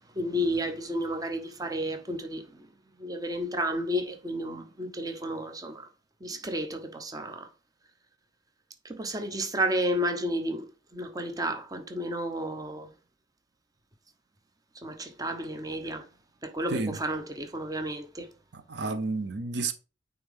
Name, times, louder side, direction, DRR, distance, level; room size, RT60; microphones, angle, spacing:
voice 1, 0.1-2.7 3.0-5.9 6.2-7.5 8.8-12.9 14.7-16.1 16.4-18.3, equal, 20° right, 0.8 m, -32 dB
voice 2, 16.7-17.0 18.5-19.7, right 3 dB, 75° right, 0.6 m, -31 dB
8.8 x 3.6 x 3.5 m
head